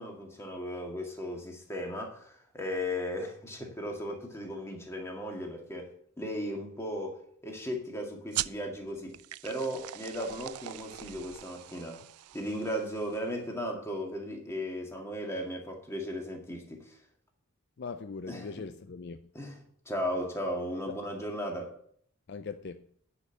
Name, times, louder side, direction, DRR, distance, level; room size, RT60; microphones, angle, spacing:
voice 1, 0.0-9.2 9.4-12.0 12.3-17.0 18.3-18.5 19.3-19.6 19.9-21.7, equal, 10° left, 2.0 m, -36 dB
sound 1, 8.3-13.4, right 14 dB, 80° right, 0.4 m, -40 dB
voice 2, 17.8-19.3 20.9-21.0 22.3-22.9, left 4 dB, 50° left, 0.4 m, -40 dB
10.0 x 5.5 x 8.1 m
head